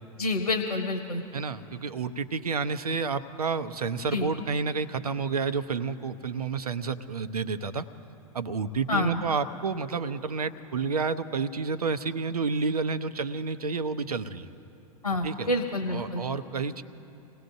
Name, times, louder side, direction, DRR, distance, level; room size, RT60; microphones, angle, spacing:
voice 1, 0.2-1.2 4.1-4.3 8.9-9.2 15.0-16.2, left 2 dB, 90° left, 5 dB, 1.2 m, -28 dB
voice 2, 1.3-7.9 8.3-14.5 15.2-15.5 15.9-16.8, right 4 dB, 80° right, 11 dB, 0.7 m, -30 dB
28.0 x 18.0 x 2.7 m, 3.0 s
figure-of-eight pair, 95°, 19 cm